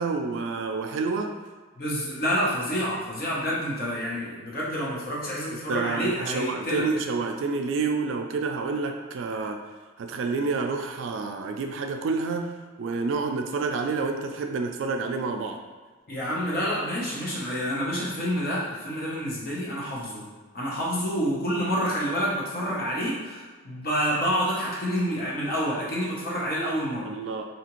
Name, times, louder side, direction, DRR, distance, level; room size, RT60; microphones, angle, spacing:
voice 1, 0.0-1.3 5.7-9.6 10.0-12.5 12.8-15.6 27.0-27.4, right 4 dB, 65° right, 4 dB, 0.3 m, -28 dB
voice 2, 1.8-6.9 16.1-20.2 20.5-27.1, equal, 50° left, -6 dB, 0.8 m, -28 dB
2.8 x 2.5 x 2.9 m, 1.4 s
head